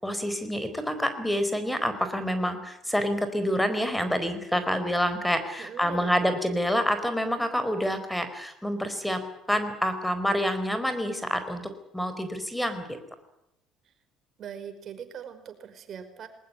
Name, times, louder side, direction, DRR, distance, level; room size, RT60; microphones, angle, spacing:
voice 1, 0.0-11.6 11.9-13.0, equal, 5° left, 9 dB, 4.7 m, -27 dB
voice 2, 5.6-6.1 14.4-16.3, right 8 dB, 50° right, 8 dB, 5.0 m, -41 dB
21.0 x 19.5 x 9.8 m, 0.80 s
hypercardioid pair, 65°, 0 cm